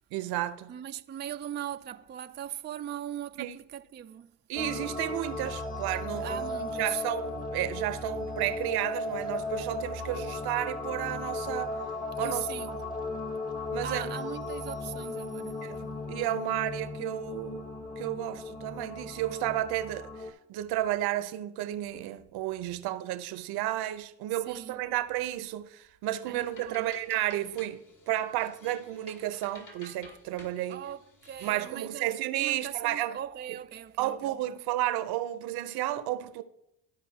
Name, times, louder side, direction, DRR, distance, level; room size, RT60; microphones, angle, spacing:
voice 1, 0.1-0.8 3.4-3.6 4.5-6.4 6.8-11.7 12.2-12.5 13.7-14.1 15.6-17.7 18.0-30.8 31.4-33.2 33.5-33.6 34.0-36.4, right 14 dB, 70° right, 0.8 m, -32 dB
voice 2, 0.7-4.3 6.1-7.0 12.2-12.8 13.8-15.7 24.5-24.8 26.3-26.9 30.7-32.1 32.4-34.4, right 11 dB, 25° right, 0.4 m, -39 dB
sound 1, 4.6-20.3, left 2 dB, 20° left, 1.4 m, -36 dB
sound 2, 26.0-31.7, left 2 dB, 50° left, 2.5 m, -53 dB
14.0 x 5.0 x 2.8 m
hypercardioid pair, 65°, 39 cm